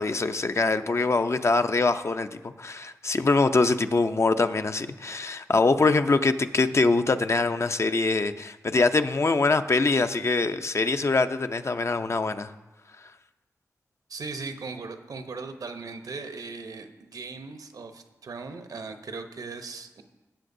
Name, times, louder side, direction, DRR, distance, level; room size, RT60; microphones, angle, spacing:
voice 1, 0.0-12.5, left 3 dB, 50° left, 9 dB, 0.6 m, -24 dB
voice 2, 14.1-20.0, right 4 dB, 80° right, 7 dB, 0.8 m, -38 dB
16.0 x 7.7 x 2.7 m, 1.1 s
cardioid pair, 40°, 6 cm